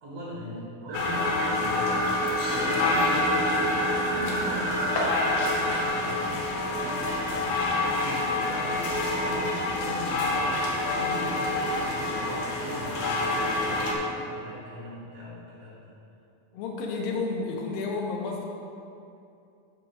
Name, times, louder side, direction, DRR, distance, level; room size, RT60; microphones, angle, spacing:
voice 1, 0.0-9.5 9.8-15.9, equal, 60° right, -6 dB, 1.7 m, -39 dB
sound 1, 0.9-14.0, left 2 dB, 70° left, 2.1 m, -27 dB
sound 2, 0.9-5.9, right 3 dB, 80° right, 2.0 m, -33 dB
voice 2, 16.5-18.5, left 4 dB, 90° left, -1 dB, 2.6 m, -31 dB
6.5 x 3.6 x 6.2 m, 2.6 s
omnidirectional pair, 4.1 m